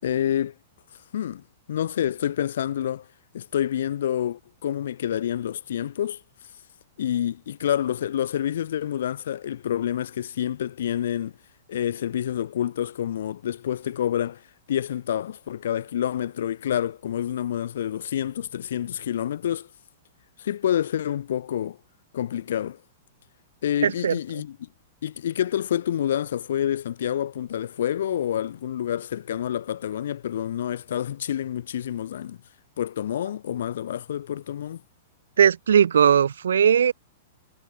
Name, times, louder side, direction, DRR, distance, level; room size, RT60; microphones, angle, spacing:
voice 1, 0.0-0.5 1.1-1.4 1.7-3.1 3.3-6.2 7.0-11.3 11.7-14.4 14.7-19.7 20.4-21.8 22.1-22.8 23.6-24.7 25.0-32.4 32.8-34.8, left 10 dB, 60° left, 6.1 m, -28 dB
voice 2, 23.8-24.1 35.4-36.9, right 8 dB, 70° right, 0.9 m, -18 dB
figure-of-eight pair, 105°, 0 cm